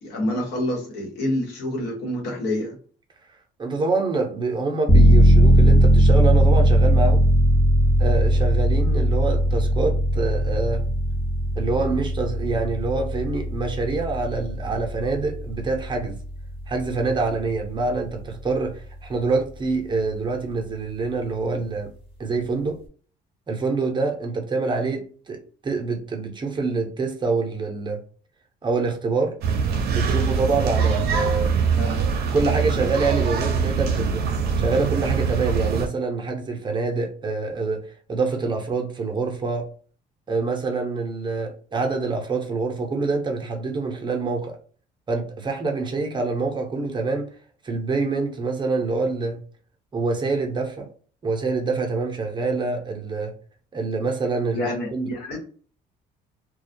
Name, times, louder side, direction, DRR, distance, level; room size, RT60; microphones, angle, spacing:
voice 1, 0.0-2.7 31.8-32.0 54.5-55.4, left 1 dB, 85° left, 1.2 m, -27 dB
voice 2, 3.6-7.2 8.0-10.9 11.6-16.2 16.7-21.9 22.2-22.8 23.5-28.0 28.6-29.3 29.9-31.5 32.2-34.2 34.6-39.7 40.3-44.6 45.1-47.3 47.6-49.4 49.9-50.9 51.2-53.4 53.7-55.1, right 3 dB, 25° right, 0.6 m, -26 dB
sound 1, 4.9-17.4 17.7-17.8, right 1 dB, 35° left, 0.9 m, -19 dB
sound 2, 29.4-35.9, right 6 dB, 70° right, 0.5 m, -23 dB
2.2 x 2.2 x 2.6 m
cardioid pair, 110°, 17 cm